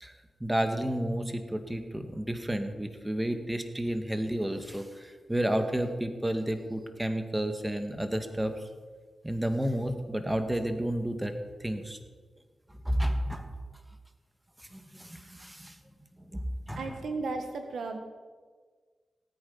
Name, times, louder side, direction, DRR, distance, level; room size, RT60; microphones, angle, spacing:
voice 1, 0.4-8.5 9.2-11.3 11.6-12.0 12.9-13.5 14.7-15.8 16.3-16.4 16.7-16.9, right 1 dB, 15° right, 7 dB, 1.9 m, -31 dB
voice 2, 16.8-18.0, right 3 dB, 80° right, 6 dB, 1.5 m, -34 dB
18.5 x 9.0 x 5.6 m, 1.5 s
cardioid pair, 45°, 0 cm